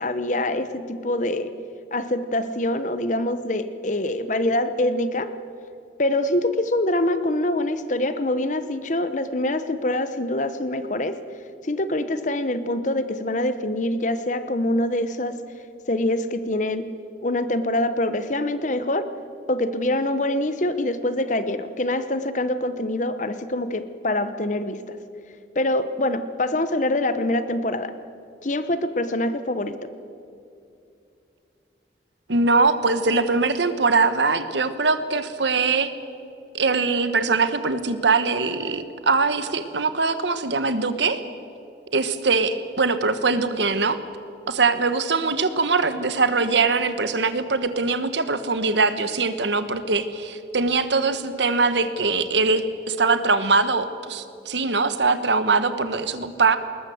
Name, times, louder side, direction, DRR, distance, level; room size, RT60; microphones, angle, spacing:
voice 1, 0.0-1.6 1.9-5.3 6.0-11.2 11.6-15.4 15.9-16.9 17.2-19.1 19.5-25.0 25.5-27.9 28.4-29.9, left 1 dB, 45° left, 12 dB, 1.0 m, -25 dB
voice 2, 32.3-35.9 36.5-41.2 41.9-44.0 44.5-56.6, right 4 dB, 80° right, 11 dB, 1.3 m, -22 dB
20.0 x 19.5 x 7.9 m, 2.6 s
head